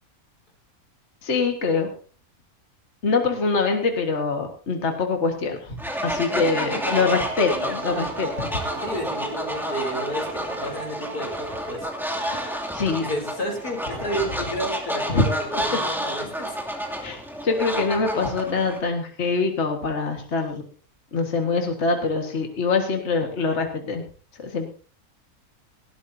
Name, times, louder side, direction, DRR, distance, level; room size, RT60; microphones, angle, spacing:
voice 1, 1.2-1.9 3.0-8.6 12.7-13.0 15.1-15.3 17.0-20.6 21.1-24.0 24.4-24.7, left 4 dB, 50° left, 3 dB, 2.0 m, -24 dB
Fowl, 5.8-18.8, equal, ahead, 2.6 m, -30 dB
sound 1, 6.3-15.7, right 4 dB, 45° right, 1.1 m, -39 dB
voice 2, 6.5-7.0 8.8-11.9 12.3-12.7 13.0-16.6, equal, 85° left, 2 dB, 4.2 m, -31 dB
19.0 x 16.5 x 2.8 m, 0.39 s
omnidirectional pair, 1.6 m